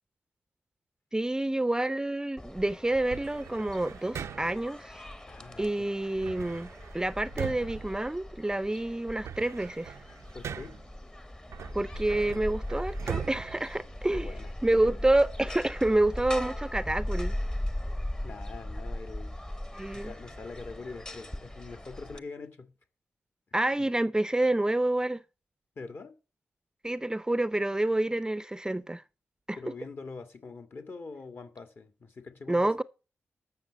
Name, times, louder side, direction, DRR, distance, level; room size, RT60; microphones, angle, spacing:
voice 1, 1.1-5.0 5.6-9.9 11.7-14.3 14.6-17.3 19.7-20.1 23.5-25.2 26.8-29.0 29.5-29.6 32.5-32.8, right 1 dB, 15° right, 0.5 m, -28 dB
sound 1, 2.4-22.2, left 1 dB, 15° left, 0.9 m, -39 dB
sound 2, 3.1-4.7 6.2-8.6 9.0-10.9 11.5-14.5, right 8 dB, 85° right, 0.5 m, -41 dB
voice 2, 5.2-5.9 10.3-10.7 14.1-14.5 18.2-19.4 19.9-22.7 23.7-23.9 25.8-26.2 29.6-32.7, left 4 dB, 55° left, 1.8 m, -44 dB
15.0 x 6.0 x 6.1 m
cardioid pair, 65°, 5 cm